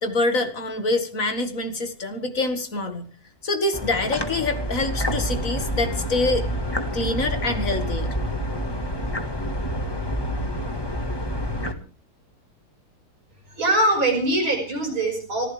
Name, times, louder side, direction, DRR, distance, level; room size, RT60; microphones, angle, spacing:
voice 1, 0.0-3.1 3.4-6.4 6.9-8.1, left 2 dB, 40° left, 7 dB, 2.3 m, -25 dB
sound 1, 3.7-11.7, equal, 15° left, 1.5 m, -28 dB
voice 2, 13.5-15.5, right 1 dB, 75° right, 2 dB, 6.7 m, -22 dB
24.5 x 15.0 x 3.5 m, 0.37 s
omnidirectional pair, 2.2 m